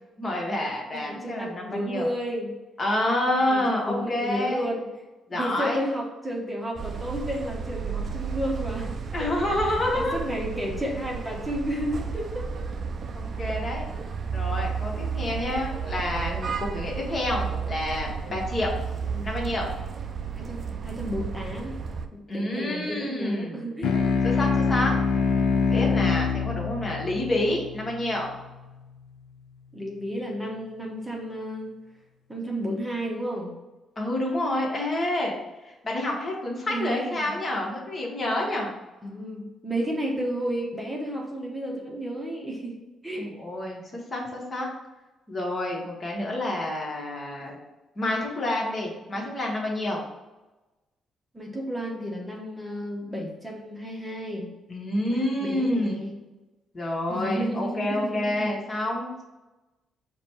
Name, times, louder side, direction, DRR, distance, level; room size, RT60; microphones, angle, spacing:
voice 1, 0.2-2.1 2.8-4.7 5.3-5.8 9.1-10.2 13.1-13.9 14.3-18.7 19.2-19.7 22.3-23.7 24.2-24.9 25.7-28.3 34.0-35.3 35.6-38.7 43.2-43.8 44.1-44.7 45.3-47.6 48.0-50.0 54.7-56.0 56.7-59.2, left 1 dB, 35° left, -2 dB, 1.2 m, -28 dB
voice 2, 0.9-2.5 3.4-4.9 5.3-9.5 9.9-12.5 19.0-19.3 20.3-21.8 22.1-23.9 29.7-31.7 32.3-33.5 36.7-37.2 39.0-42.8 43.0-43.3 47.4-47.5 51.3-54.5 55.1-56.1 57.1-58.5, equal, 10° right, -2 dB, 0.9 m, -32 dB
sound 1, 6.8-22.1, right 6 dB, 50° right, 0.4 m, -32 dB
sound 2, 23.8-28.7, left 5 dB, 65° left, 0.5 m, -25 dB
4.9 x 2.2 x 4.4 m, 1.1 s
cardioid pair, 90°, 0 cm